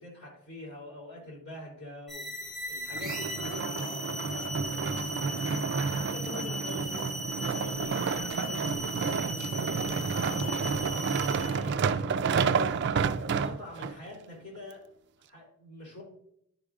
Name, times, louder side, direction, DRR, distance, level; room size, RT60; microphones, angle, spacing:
voice 1, 0.0-2.4 2.7-5.5 5.9-12.0 13.4-14.9 15.3-16.0, left 1 dB, 50° left, -2 dB, 2.6 m, -45 dB
sound 1, 2.1-11.6, left 1 dB, ahead, 0.9 m, -38 dB
sound 2, 2.9-13.9 14.6-14.7, right 5 dB, 55° right, 0.3 m, -30 dB
10.5 x 4.9 x 2.4 m, 0.75 s
head